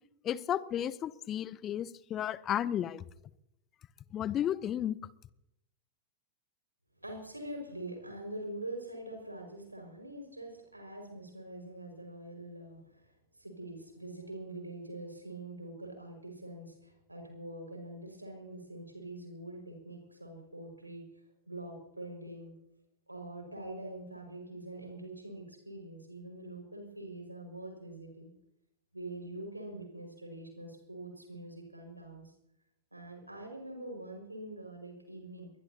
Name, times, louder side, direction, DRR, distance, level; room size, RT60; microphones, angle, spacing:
voice 1, 0.2-3.0 4.1-5.0, left 10 dB, 30° left, 0.7 m, -33 dB
voice 2, 7.0-22.5 23.1-28.3 28.9-32.3 32.9-35.5, right 1 dB, 85° right, 5.5 m, -44 dB
22.5 x 21.0 x 2.9 m
figure-of-eight pair, 90°, 0 cm